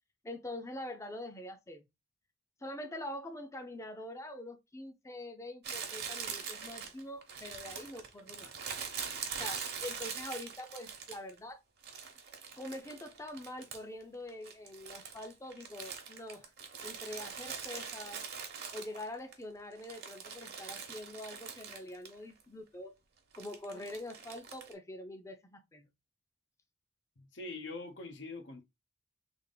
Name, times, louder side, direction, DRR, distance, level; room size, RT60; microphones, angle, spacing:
voice 1, 0.2-1.9 2.6-8.6 9.4-11.6 12.6-16.5 16.8-18.2 18.7-22.9 23.3-25.9, left 1 dB, 15° left, 0.5 m, -44 dB
Crumpling crinkling, 5.6-11.4 11.8-14.0 14.3-19.3 19.7-22.1 22.4-22.5 23.3-24.7, right 6 dB, 60° right, 1.0 m, -43 dB
voice 2, 27.2-28.6, left 3 dB, 85° left, 0.9 m, -43 dB
3.4 x 2.4 x 3.7 m
head